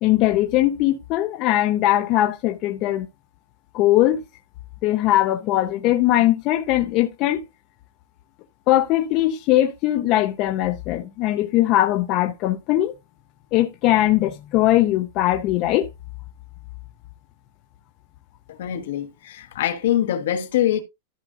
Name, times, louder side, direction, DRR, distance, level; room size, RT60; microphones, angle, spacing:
voice 1, 0.0-3.1 3.7-4.2 4.8-7.4 8.7-12.9 13.5-15.9, left 14 dB, 30° left, 0.6 m, -20 dB
voice 2, 18.6-20.8, left 11 dB, 65° left, 1.4 m, -23 dB
14.0 x 5.1 x 2.5 m
supercardioid pair, 175°, 0 cm